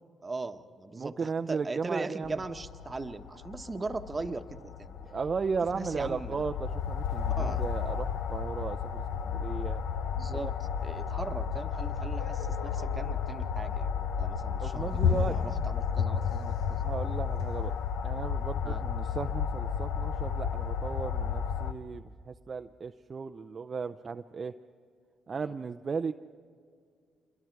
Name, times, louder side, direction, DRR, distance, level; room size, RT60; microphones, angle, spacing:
voice 1, 0.2-5.0 5.7-6.4 7.4-7.6 10.1-16.8 18.6-18.8 25.4-25.5, right 3 dB, 30° right, 9 dB, 1.1 m, -39 dB
voice 2, 0.9-2.3 5.1-9.8 14.6-15.4 16.8-17.7 18.0-24.5 25.3-26.1, right 5 dB, 45° right, 7 dB, 0.5 m, -35 dB
sound 1, 2.2-21.7, left 7 dB, 80° left, 0.8 m, -32 dB
26.5 x 22.0 x 4.7 m, 2.1 s
hypercardioid pair, 50°, 0 cm